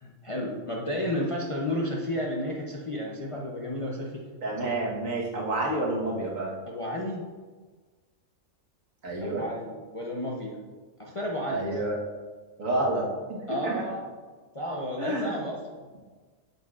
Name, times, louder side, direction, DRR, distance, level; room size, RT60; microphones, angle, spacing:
voice 1, 0.0-4.2 6.7-7.3 9.2-10.6 11.0-11.8 13.5-14.1 14.5-15.9, left 1 dB, 30° left, -3 dB, 0.6 m, -32 dB
voice 2, 4.4-6.5 9.0-9.5 11.5-12.0 12.6-13.8 15.0-15.4, right 2 dB, 75° right, -2 dB, 1.7 m, -29 dB
8.6 x 6.6 x 2.4 m, 1.4 s
omnidirectional pair, 1.4 m